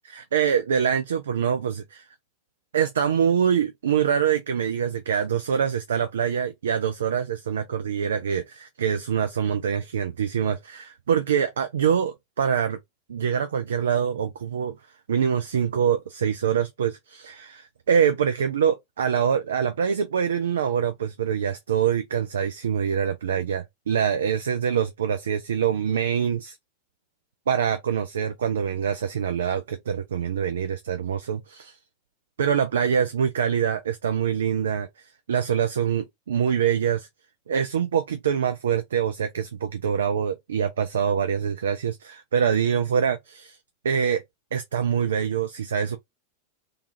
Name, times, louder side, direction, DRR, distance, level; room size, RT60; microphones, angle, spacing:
voice 1, 0.0-2.0 2.7-12.8 13.1-14.8 15.1-26.6 27.5-31.8 32.4-37.1 37.5-43.6 43.8-44.2 44.5-46.0, right 7 dB, 65° right, 0.3 m, -25 dB
2.5 x 2.3 x 2.8 m
figure-of-eight pair, 90°, 0 cm